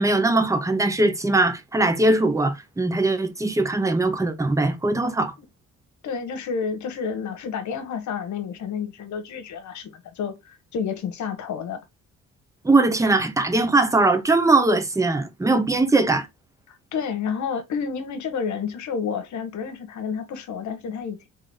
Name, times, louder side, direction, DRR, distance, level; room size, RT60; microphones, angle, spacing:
voice 1, 0.0-5.3 12.6-16.3, right 2 dB, 10° right, 0.8 m, -20 dB
voice 2, 6.0-11.8 16.7-21.3, left 6 dB, 70° left, 1.1 m, -30 dB
3.8 x 3.5 x 3.4 m
cardioid pair, 90°, 30 cm